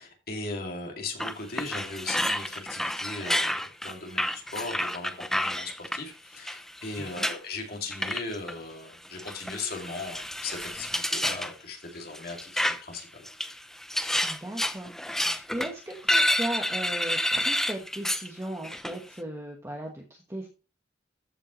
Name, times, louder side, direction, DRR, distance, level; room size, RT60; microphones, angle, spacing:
voice 1, 0.0-13.2, left 3 dB, 55° left, 2 dB, 2.4 m, -38 dB
sound 1, 1.2-6.0 6.5-7.4 7.9-8.5 9.2-11.5 12.1-12.9 13.3-18.3 18.6-18.9, left 1 dB, ahead, 0.5 m, -29 dB
voice 2, 7.0-7.3 14.2-20.5, right 1 dB, 15° right, 0 dB, 1.1 m, -37 dB
14.0 x 5.4 x 3.1 m, 0.34 s
head